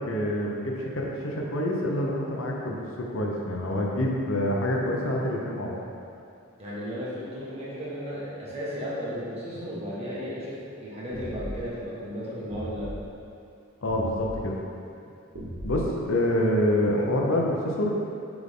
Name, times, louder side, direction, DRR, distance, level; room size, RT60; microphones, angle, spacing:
voice 1, 0.0-5.8 13.8-14.6 15.6-15.8 16.1-17.9, left 1 dB, 65° left, -1 dB, 0.7 m, -26 dB
voice 2, 6.6-12.9, equal, 30° right, -9 dB, 1.5 m, -34 dB
sound 1, 11.1-11.7 12.5-13.0 13.9-14.4 15.3-16.1, equal, 60° right, 1.1 m, -37 dB
7.6 x 3.5 x 3.7 m, 2.6 s
head